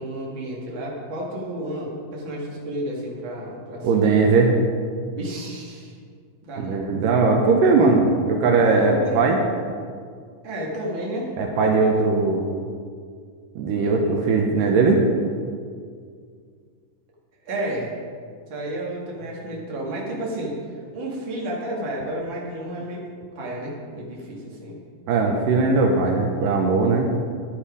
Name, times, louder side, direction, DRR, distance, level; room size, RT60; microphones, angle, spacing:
voice 1, 0.0-4.0 5.2-5.9 6.4-6.8 8.6-9.2 10.4-11.3 17.4-18.0 18.5-23.1 23.3-24.8, right 1 dB, 40° right, -3 dB, 2.5 m, -31 dB
voice 2, 3.8-4.5 6.6-9.4 11.4-12.4 13.6-15.0 25.1-27.1, right 4 dB, 75° right, 1 dB, 2.6 m, -19 dB
10.5 x 10.0 x 5.0 m, 2.1 s
omnidirectional pair, 4.0 m